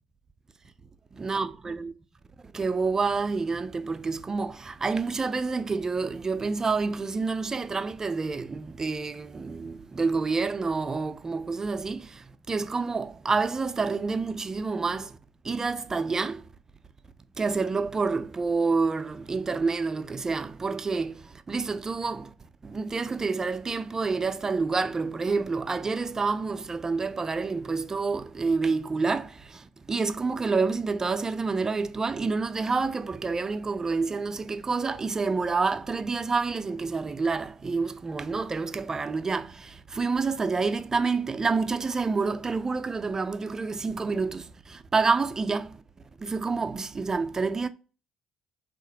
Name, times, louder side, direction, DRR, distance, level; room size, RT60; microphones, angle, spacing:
voice 1, 1.2-1.9 2.5-15.2 15.4-16.4 17.4-22.3 22.6-45.8 46.2-47.7, right 4 dB, 25° right, 0.3 m, -28 dB
3.1 x 2.8 x 2.7 m
hypercardioid pair, 50°, 2 cm